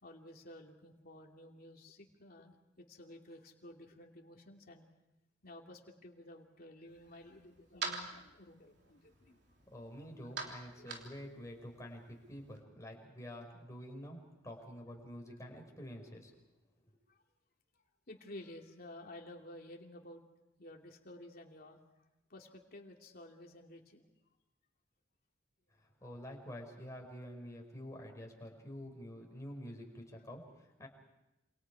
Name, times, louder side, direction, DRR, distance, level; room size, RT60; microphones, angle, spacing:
voice 1, 0.0-4.9 5.4-9.4 10.5-11.0 17.1-17.2 18.1-20.2 20.6-21.8 22.3-24.0, left 1 dB, 50° left, 1 dB, 2.9 m, -53 dB
sound 1, 6.9-12.6, right 4 dB, 65° right, 3.4 m, -47 dB
voice 2, 9.7-16.3 16.8-16.9 25.7-30.9, equal, 15° left, 1 dB, 5.2 m, -48 dB
28.0 x 27.0 x 4.9 m, 0.92 s
head